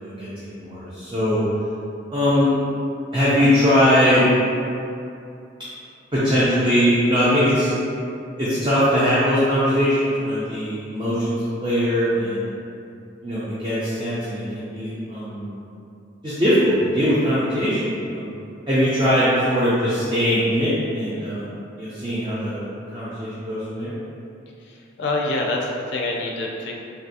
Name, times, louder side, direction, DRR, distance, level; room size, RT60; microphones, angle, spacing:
voice 1, 0.0-1.4 2.1-2.6 3.1-4.3 6.1-7.7 8.4-12.5 13.2-15.5 16.2-18.3 18.7-24.0, equal, 25° right, -11 dB, 0.5 m, -21 dB
voice 2, 24.6-26.8, left 2 dB, 60° left, -1 dB, 0.4 m, -26 dB
3.2 x 2.6 x 2.7 m, 2.6 s
head